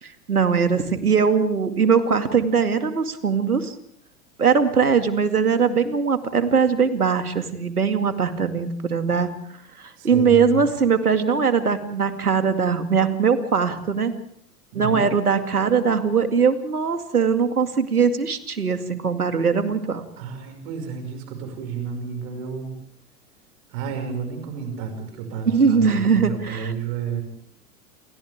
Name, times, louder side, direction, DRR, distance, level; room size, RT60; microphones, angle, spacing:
voice 1, 0.0-3.8 4.4-9.3 9.8-14.1 14.7-20.1 25.5-26.7, right 6 dB, 80° right, 8 dB, 2.4 m, -21 dB
voice 2, 10.0-10.6 14.7-15.1 20.2-22.7 23.7-27.2, right 6 dB, 45° right, 4 dB, 5.8 m, -31 dB
29.0 x 28.5 x 3.6 m, 0.63 s
figure-of-eight pair, 95°, 44 cm